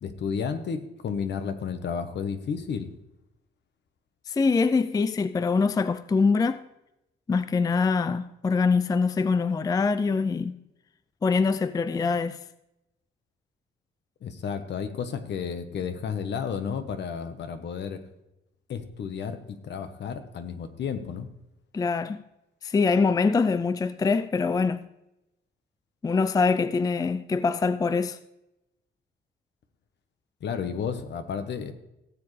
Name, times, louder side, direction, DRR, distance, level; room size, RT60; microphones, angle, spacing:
voice 1, 0.0-2.9 14.2-18.0 18.7-21.3 30.4-31.7, left 6 dB, 60° left, 1.2 m, -32 dB
voice 2, 4.3-6.7 7.3-10.6 11.2-12.4 21.7-22.2 22.6-24.9 26.0-28.2, left 4 dB, 20° left, 0.4 m, -24 dB
17.0 x 7.6 x 3.3 m
cardioid pair, 90°, 20 cm